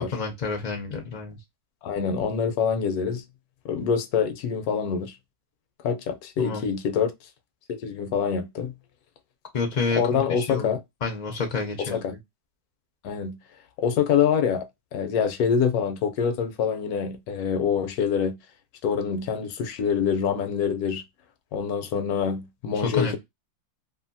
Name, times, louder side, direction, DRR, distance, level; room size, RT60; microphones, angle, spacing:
voice 1, 0.1-1.4 6.4-6.7 9.5-12.2 22.8-23.2, left 4 dB, 60° left, 0.4 m, -29 dB
voice 2, 1.8-3.2 3.6-5.2 5.8-7.1 7.7-8.7 10.0-10.8 11.8-12.1 13.0-13.4 13.8-18.4 18.8-21.0 21.5-23.2, left 7 dB, 80° left, 1.1 m, -25 dB
2.7 x 2.5 x 2.6 m
omnidirectional pair, 1.6 m